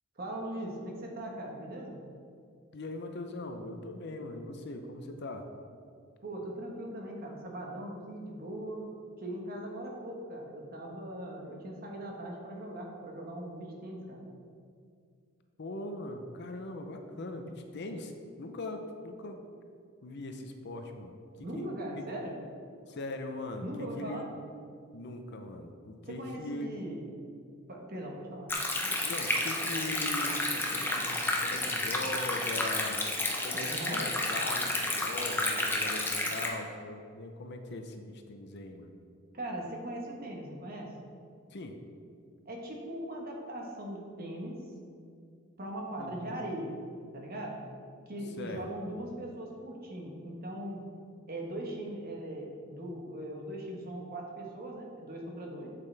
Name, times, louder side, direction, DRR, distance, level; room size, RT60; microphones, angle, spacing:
voice 1, 0.2-2.0 6.2-8.8 9.2-14.2 21.4-22.4 23.6-24.3 26.1-27.1 27.7-28.5 33.7-34.0 39.3-40.9 42.4-44.6 45.6-46.8 47.1-47.6 48.1-50.9 51.3-55.7, right 1 dB, 45° right, 0 dB, 1.2 m, -40 dB
voice 2, 2.7-5.4 15.6-18.1 18.4-19.4 20.0-21.7 21.9-22.1 22.9-24.2 24.9-26.9 29.0-33.0 33.4-38.9 41.5-41.8 46.0-46.4 48.4-48.7, left 2 dB, 55° left, 5 dB, 0.6 m, -40 dB
Stream, 28.5-36.5, left 2 dB, 10° left, 0.7 m, -31 dB
7.5 x 7.5 x 3.3 m, 2.3 s
head